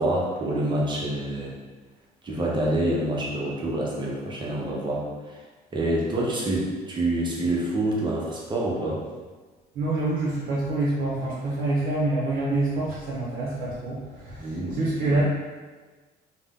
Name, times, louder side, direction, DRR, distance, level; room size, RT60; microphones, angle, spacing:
voice 1, 0.0-1.5 2.2-5.4 5.7-9.0 14.4-14.8, right 1 dB, 25° right, -4 dB, 0.7 m, -27 dB
voice 2, 9.8-15.2, right 2 dB, 60° right, -6 dB, 0.6 m, -26 dB
2.6 x 2.1 x 3.5 m, 1.3 s
cardioid pair, 110°, 17 cm